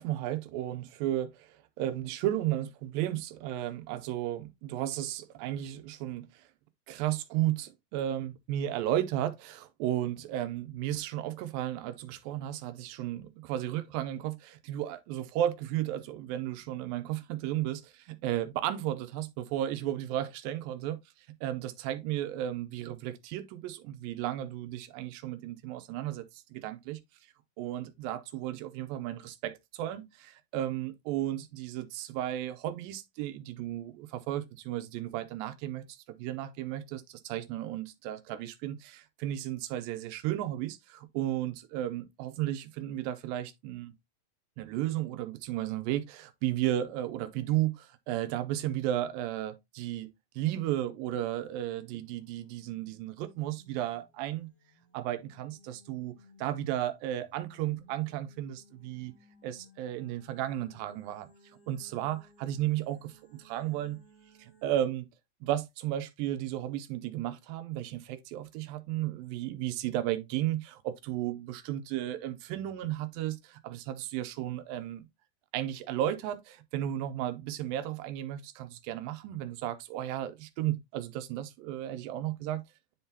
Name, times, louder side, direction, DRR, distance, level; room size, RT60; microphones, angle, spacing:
voice 1, 0.0-6.4 6.9-21.0 21.4-27.0 27.6-43.9 44.6-54.5 54.9-59.1 59.4-61.3 61.7-64.0 64.4-65.1 65.4-75.1 75.5-82.6, right 13 dB, 85° right, 2.4 m, -34 dB
sound 1, 52.0-64.7, equal, 45° left, 0.6 m, -60 dB
10.0 x 3.7 x 2.7 m
omnidirectional pair, 4.0 m